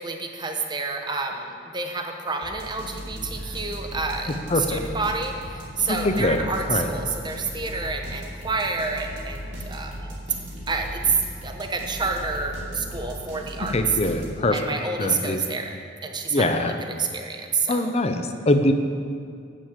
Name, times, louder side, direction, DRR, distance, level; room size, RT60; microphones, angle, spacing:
voice 1, 0.0-10.1 10.7-11.0 11.4-13.8 14.5-15.7 16.0-16.7 17.0-17.9, right 3 dB, 25° right, 3 dB, 0.9 m, -29 dB
sound 1, 2.4-14.6, equal, 75° right, 2.7 m, -37 dB
voice 2, 4.3-4.9 5.9-6.9 13.7-14.7 15.0-15.4 16.3-16.8 17.7-18.7, left 1 dB, 35° left, 7 dB, 0.7 m, -23 dB
8.4 x 7.6 x 7.3 m, 2.3 s
head